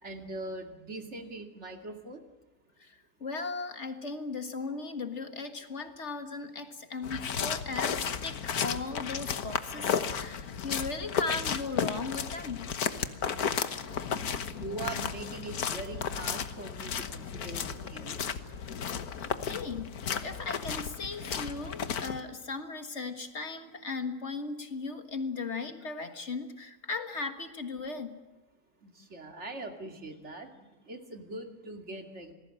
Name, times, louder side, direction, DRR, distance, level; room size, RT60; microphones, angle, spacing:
voice 1, 0.0-2.2 14.5-18.2 28.8-30.5 30.9-32.3, right 2 dB, 50° right, 4 dB, 2.8 m, -41 dB
voice 2, 2.8-12.8 19.5-28.1, left 4 dB, 50° left, 7 dB, 2.0 m, -37 dB
sound 1, 7.0-22.2, left 7 dB, 80° left, 1.7 m, -34 dB
27.0 x 19.5 x 7.6 m, 1.2 s
omnidirectional pair, 1.6 m